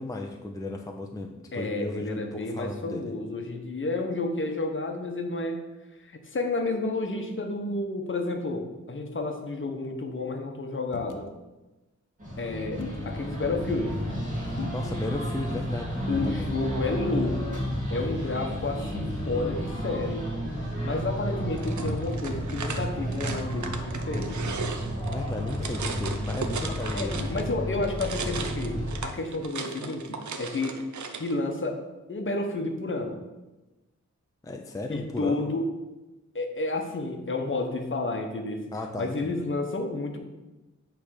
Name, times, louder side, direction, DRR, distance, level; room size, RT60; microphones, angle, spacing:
voice 1, 0.0-3.1 14.7-16.0 16.2-16.5 25.1-27.2 34.4-35.5 38.7-39.5, left 2 dB, 10° left, 2 dB, 0.5 m, -35 dB
voice 2, 1.5-5.6 6.0-11.3 12.4-14.0 16.1-20.3 20.8-24.4 26.9-28.8 29.0-30.8 31.2-31.8 32.1-33.2 34.9-35.7 36.3-38.7 39.0-40.2, left 2 dB, 40° left, 4 dB, 1.0 m, -31 dB
sound 1, 10.9-11.2 12.8-13.1 14.6-14.9 16.1-16.4 16.7-17.0 17.4-17.5 18.9-19.2 21.8-22.5 24.2-24.6 25.6-25.7 27.2-27.4, left 4 dB, 85° left, 0.7 m, -39 dB
sound 2, 12.2-29.0, equal, 25° right, 2.3 m, -32 dB
sound 3, 21.6-27.5 27.8-31.3, right 5 dB, 70° right, 0.7 m, -37 dB
8.3 x 3.4 x 6.4 m, 1.1 s
wide cardioid pair, 130°, 30 cm